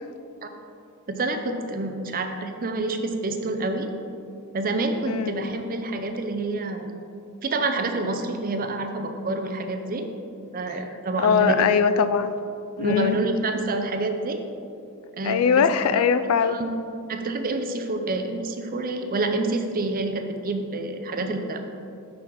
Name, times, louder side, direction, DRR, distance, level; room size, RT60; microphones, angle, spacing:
voice 1, 1.1-3.9 4.5-6.9 7.4-10.1 10.5-11.7 12.8-14.4 15.2-15.7 16.5-16.7 17.1-21.6, right 2 dB, 40° right, 5 dB, 0.5 m, -28 dB
voice 2, 5.1-5.5 11.2-12.3 12.8-13.2 15.2-16.6, left 6 dB, 65° left, 12 dB, 0.3 m, -21 dB
6.3 x 5.5 x 4.5 m, 2.5 s
head